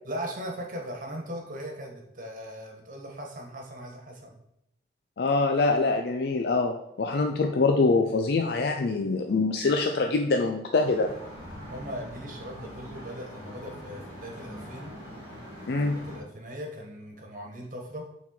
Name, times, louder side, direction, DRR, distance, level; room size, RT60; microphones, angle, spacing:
voice 1, 0.0-4.4 11.7-14.9 15.9-18.1, equal, 50° right, 1 dB, 1.4 m, -39 dB
voice 2, 5.2-11.1 15.7-16.0, left 3 dB, 60° left, 4 dB, 0.4 m, -24 dB
sound 1, 10.8-16.2, equal, 20° left, 2.4 m, -43 dB
6.1 x 4.1 x 4.3 m, 0.79 s
head